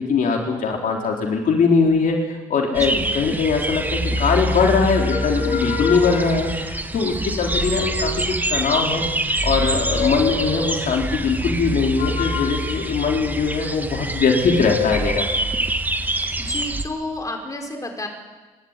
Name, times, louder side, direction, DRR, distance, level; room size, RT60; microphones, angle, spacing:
voice 1, 0.0-9.1 9.4-15.3, left 4 dB, 60° left, 1 dB, 3.7 m, -21 dB
voice 2, 2.7-3.1 16.4-18.1, left 2 dB, 20° left, 2 dB, 5.0 m, -30 dB
sound 1, 2.7-16.8, right 1 dB, 10° right, 1.8 m, -25 dB
sound 2, 4.9-6.6 7.3-8.6 9.5-10.9 12.0-13.8 14.4-15.4, left 6 dB, 90° left, 5.4 m, -29 dB
28.0 x 12.5 x 9.7 m, 1.3 s
cardioid pair, 90°, 15 cm